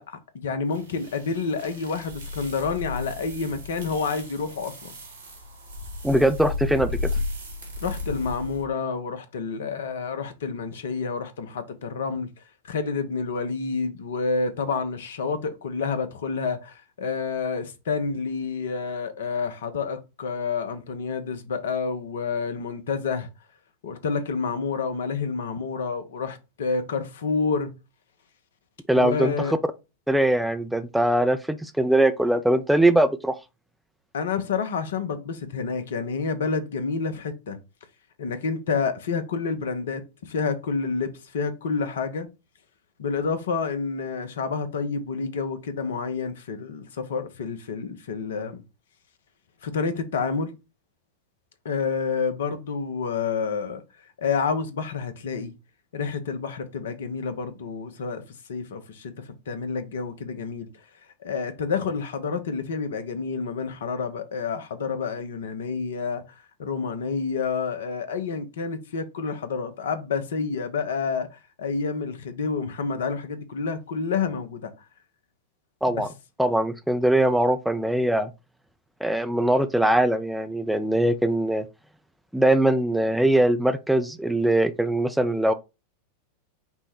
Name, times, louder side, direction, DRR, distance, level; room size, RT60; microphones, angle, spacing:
voice 1, 0.0-4.9 7.8-12.3 12.6-23.3 23.8-27.7 28.9-29.5 34.1-37.6 38.2-42.3 43.0-48.6 49.6-50.5 51.6-53.8 54.2-55.5 55.9-58.2 58.5-60.7 61.2-66.2 66.6-71.3 71.6-74.7 75.9-76.0, left 5 dB, 60° left, 0.6 m, -29 dB
sound 1, 0.7-8.6, left 2 dB, 70° right, 1.3 m, -34 dB
voice 2, 6.0-7.1 28.9-29.6 30.1-33.4 75.8-76.1 76.4-78.3 79.0-81.7 82.3-85.5, right 1 dB, ahead, 0.3 m, -21 dB
5.3 x 2.1 x 4.3 m
figure-of-eight pair, 90°, 0 cm